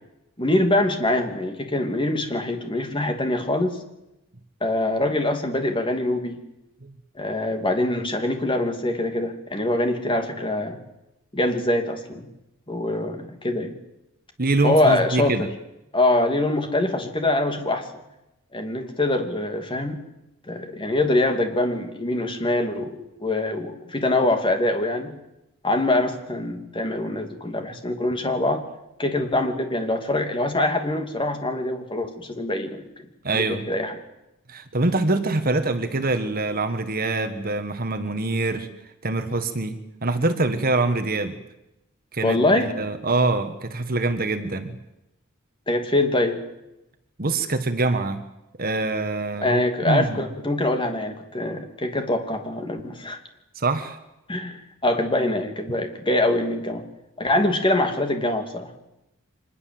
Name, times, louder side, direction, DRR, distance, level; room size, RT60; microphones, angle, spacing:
voice 1, 0.4-3.8 4.6-6.4 7.2-10.8 11.3-12.3 12.7-13.7 14.6-15.5 15.9-17.9 18.5-20.0 20.5-25.1 25.6-28.6 29.0-32.8 33.3-34.0 42.2-42.7 45.7-46.4 49.4-53.2 54.3-56.8 57.2-58.7, left 1 dB, 25° left, 5 dB, 2.8 m, -24 dB
voice 2, 14.4-15.5 33.2-33.7 34.5-38.7 39.0-39.8 40.0-41.4 42.1-44.8 47.2-48.2 48.6-50.3 53.5-54.0, right 2 dB, 45° right, 8 dB, 1.7 m, -24 dB
25.0 x 21.0 x 7.9 m, 0.90 s
head